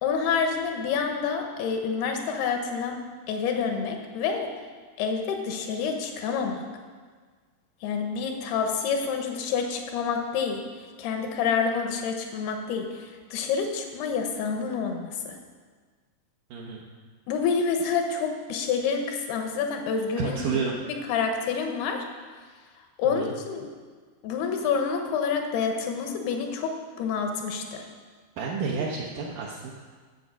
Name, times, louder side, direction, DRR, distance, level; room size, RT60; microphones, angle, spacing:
voice 1, 0.0-3.0 3.3-4.5 5.0-6.6 7.8-10.6 11.0-15.4 17.3-20.4 20.8-22.0 23.0-23.7 24.2-27.8, left 6 dB, 85° left, 4 dB, 3.0 m, -28 dB
voice 2, 16.5-16.8 20.2-20.8 23.0-23.3 28.4-29.7, right 5 dB, 70° right, -3 dB, 2.2 m, -30 dB
11.0 x 7.7 x 6.2 m, 1.5 s
omnidirectional pair, 4.5 m